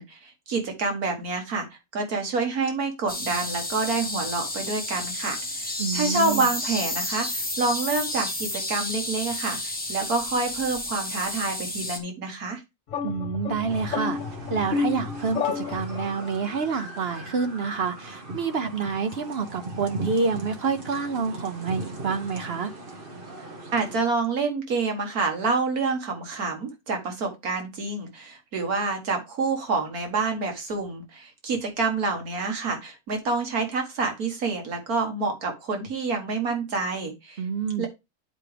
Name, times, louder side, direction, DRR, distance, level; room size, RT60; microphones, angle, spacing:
voice 1, 0.0-1.7 1.9-12.6 23.7-37.4 37.8-37.9, right 3 dB, 75° right, 1.8 m, -28 dB
sound 1, 3.1-12.0, left 1 dB, 5° left, 1.1 m, -31 dB
voice 2, 5.8-6.5 13.0-14.2 14.5-22.7 37.4-37.9, right 5 dB, 55° right, 0.7 m, -28 dB
sound 2, 12.9-16.4, left 5 dB, 60° left, 1.1 m, -30 dB
sound 3, 13.7-24.0, right 2 dB, 40° right, 1.4 m, -39 dB
9.9 x 4.7 x 3.3 m
omnidirectional pair, 1.6 m